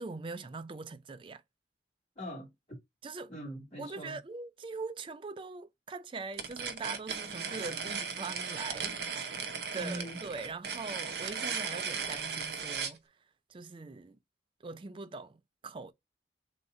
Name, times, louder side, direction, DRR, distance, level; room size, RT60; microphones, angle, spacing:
voice 1, 0.0-1.4 3.0-3.3 3.8-13.0 13.5-14.2 14.6-15.9, right 4 dB, 30° right, 0.3 m, -42 dB
voice 2, 2.2-2.5 3.3-4.2 9.8-10.2, equal, 30° left, 2.2 m, -41 dB
sound 1, 6.3-13.0, right 6 dB, 60° right, 0.7 m, -37 dB
3.6 x 2.8 x 4.2 m
head